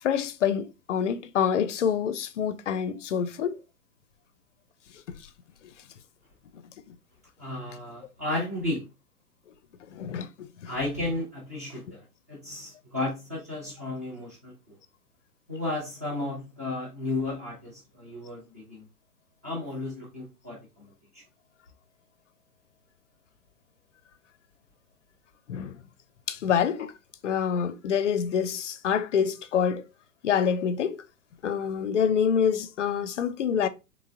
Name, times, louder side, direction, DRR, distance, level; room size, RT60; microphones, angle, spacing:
voice 1, 0.0-3.6 5.1-5.2 6.9-7.0 9.9-10.7 25.5-25.8 26.3-26.9 27.2-29.8 30.2-31.0 31.4-33.7, left 7 dB, 55° left, 0.5 m, -26 dB
voice 2, 7.4-8.9 10.7-14.8 15.5-18.9 19.4-21.2, left 2 dB, 10° right, 0.4 m, -34 dB
3.5 x 3.0 x 2.5 m
figure-of-eight pair, 115°, 46 cm